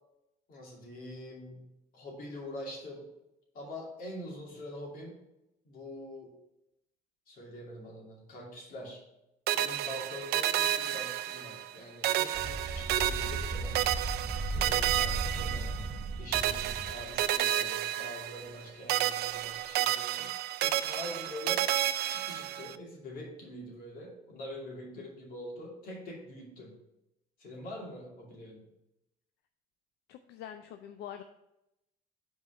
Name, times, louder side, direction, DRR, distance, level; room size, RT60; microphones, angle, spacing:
voice 1, 0.5-3.1 3.5-5.2 5.6-6.4 7.3-9.0 9.5-14.0 14.5-15.8 16.2-20.3 20.6-21.7 22.0-26.8 27.4-28.6, left 1 dB, 55° left, -2 dB, 2.6 m, -44 dB
sound 1, 9.5-11.8 12.0-16.0 16.3-18.6 18.9-22.7, right 13 dB, 70° right, 0.4 m, -31 dB
sound 2, 12.3-17.3, right 2 dB, 20° right, 1.1 m, -36 dB
voice 2, 30.1-31.2, left 10 dB, 80° left, 8 dB, 0.5 m, -44 dB
5.6 x 4.6 x 6.2 m, 0.88 s
cardioid pair, 110°, 17 cm